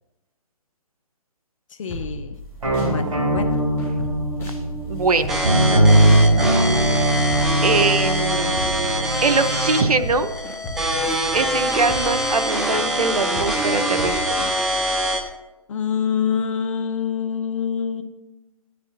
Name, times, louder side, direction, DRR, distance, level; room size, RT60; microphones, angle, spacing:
voice 1, 1.8-2.4 2.8-3.5 15.7-18.0, left 7 dB, 60° left, 7 dB, 0.9 m, -25 dB
sound 1, 1.9-2.9 3.4-9.6 10.0-15.2, equal, 15° left, 2.0 m, -36 dB
sound 2, 2.6-10.1, right 1 dB, 70° right, 4.2 m, -20 dB
voice 2, 4.9-5.4 7.6-8.6 9.2-10.3 11.3-14.2, right 4 dB, 85° right, 10 dB, 0.8 m, -22 dB
sound 3, 5.3-15.3, right 1 dB, ahead, 0.3 m, -24 dB
14.0 x 9.9 x 2.7 m, 1.0 s
hypercardioid pair, 145°, 19 cm